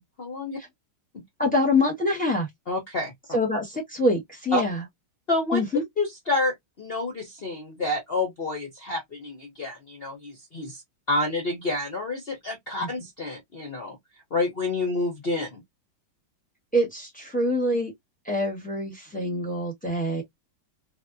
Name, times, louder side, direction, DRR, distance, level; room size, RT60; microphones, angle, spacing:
voice 1, 0.2-0.6 1.1-1.2 2.7-3.1 4.5-4.6 5.3-5.6 6.0-10.8 11.1-14.0 14.3-15.6, left 2 dB, 70° left, 0.5 m, -28 dB
voice 2, 1.4-2.5 3.3-4.8 5.5-5.8 12.8-12.9 16.7-17.9 18.2-20.2, left 1 dB, 10° left, 0.6 m, -25 dB
3.3 x 2.2 x 2.5 m
omnidirectional pair, 2.3 m